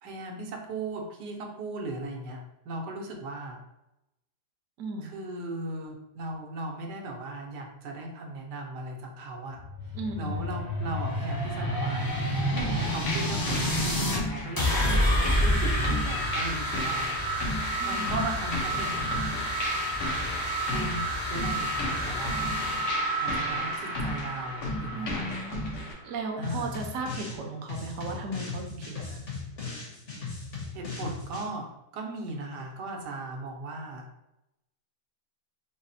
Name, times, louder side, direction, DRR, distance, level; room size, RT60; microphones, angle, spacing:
voice 1, 0.0-3.6 5.0-9.6 9.8-12.1 12.5-14.8 15.4-17.1 17.8-19.2 20.7-22.6 23.2-25.3 26.4-26.8 30.7-31.7 31.9-34.0, right 2 dB, 85° right, 2 dB, 1.3 m, -37 dB
voice 2, 4.8-5.1 9.9-10.5 17.8-18.3 24.9-29.3, right 3 dB, 60° right, 2 dB, 0.9 m, -36 dB
sound 1, 9.6-14.2 14.6-26.1, equal, 25° left, 0.4 m, -29 dB
sound 2, 12.6-25.9, left 2 dB, 80° left, 1.5 m, -35 dB
sound 3, 26.4-27.4 27.7-31.5, left 4 dB, 45° left, 1.5 m, -38 dB
4.1 x 2.0 x 4.0 m, 0.89 s
omnidirectional pair, 1.8 m